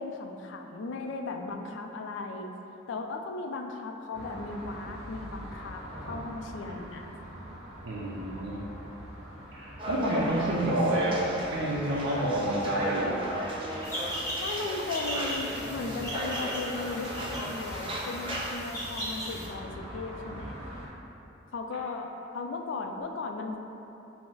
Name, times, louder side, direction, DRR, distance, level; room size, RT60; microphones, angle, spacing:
voice 1, 0.0-2.5 2.9-7.1 10.1-10.5 14.4-20.6 21.5-23.6, left 3 dB, 70° left, 4 dB, 0.3 m, -37 dB
sound 1, 4.1-20.9, equal, 55° right, 1.3 m, -44 dB
voice 2, 7.8-8.7 9.5-13.2, right 1 dB, 80° right, -5 dB, 0.5 m, -28 dB
sound 2, 9.8-18.5, right 1 dB, 25° right, 0.4 m, -37 dB
sound 3, 13.8-19.5, equal, 15° left, 0.9 m, -38 dB
5.8 x 2.0 x 3.8 m, 3.0 s
head